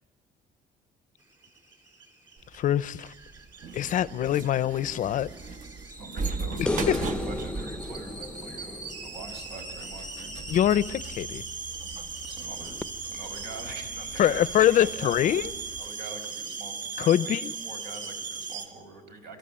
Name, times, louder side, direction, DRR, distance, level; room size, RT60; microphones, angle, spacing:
sound 1, 1.3-18.7, right 4 dB, 25° right, 3.1 m, -39 dB
sound 2, 2.4-15.9, right 3 dB, 50° right, 1.2 m, -40 dB
voice 1, 2.5-3.1 3.7-5.3 6.9-7.0 10.5-11.4 14.2-15.5 17.0-17.5, left 11 dB, 50° left, 18 dB, 0.6 m, -24 dB
voice 2, 6.0-10.4 12.2-12.8 13.1-17.1 17.6-19.4, right 3 dB, 80° right, 5 dB, 5.1 m, -43 dB
sound 3, 6.6-10.0 12.8-12.9, left 1 dB, 5° left, 0.6 m, -33 dB
27.5 x 13.0 x 8.8 m, 1.3 s
cardioid pair, 130°, 17 cm